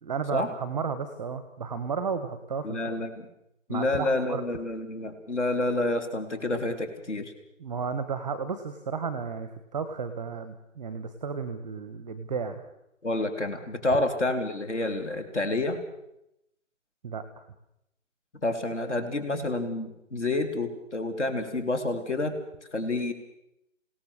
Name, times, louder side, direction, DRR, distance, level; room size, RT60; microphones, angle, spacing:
voice 1, 0.0-3.0 3.7-4.4 7.6-12.6 17.0-17.2, right 5 dB, 5° right, 10 dB, 0.9 m, -33 dB
voice 2, 2.6-3.3 3.7-7.3 13.0-15.8 18.4-22.4 22.7-23.1, left 2 dB, 60° left, 7 dB, 4.2 m, -29 dB
28.5 x 17.5 x 6.6 m, 0.82 s
figure-of-eight pair, 155°, 40 cm